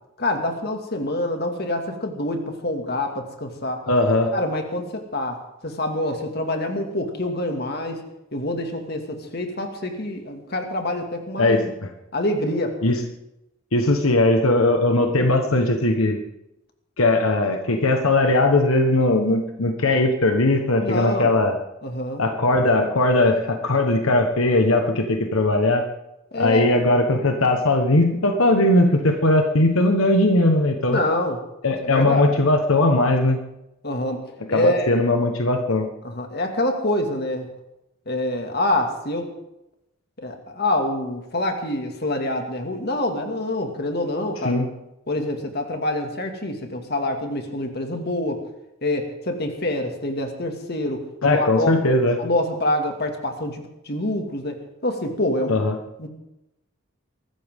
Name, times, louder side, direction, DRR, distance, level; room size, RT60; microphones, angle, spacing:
voice 1, 0.2-3.8 4.3-8.0 8.3-11.7 12.1-12.8 20.8-21.3 21.8-22.2 26.3-26.8 30.9-31.4 31.8-32.3 33.8-34.2 34.5-34.9 36.0-37.5 38.1-39.3 40.2-44.6 45.1-48.4 48.8-51.9 52.2-55.6 56.0-56.1, left 1 dB, 50° left, 4 dB, 2.2 m, -26 dB
voice 2, 3.9-4.3 11.4-11.9 12.8-13.0 13.7-16.2 17.0-21.6 22.2-25.8 26.4-31.0 31.6-33.4 34.5-35.9 44.4-44.7 51.2-52.2 55.5-55.7, left 2 dB, 85° left, 4 dB, 1.3 m, -19 dB
23.0 x 13.5 x 3.7 m, 0.88 s
head